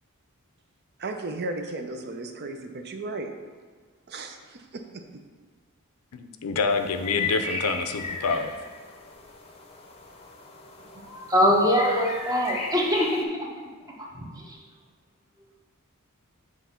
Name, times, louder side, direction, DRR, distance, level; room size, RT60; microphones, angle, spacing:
voice 1, 1.0-3.3 4.1-5.2, right 2 dB, 45° right, 5 dB, 0.5 m, -35 dB
voice 2, 6.1-8.5, left 4 dB, 80° left, 7 dB, 0.5 m, -27 dB
sound 1, 6.7-13.2, left 3 dB, 25° left, 0.7 m, -36 dB
voice 3, 10.9-13.3 14.0-14.6, equal, 15° right, -1 dB, 0.9 m, -23 dB
7.7 x 3.1 x 5.7 m, 1.5 s
head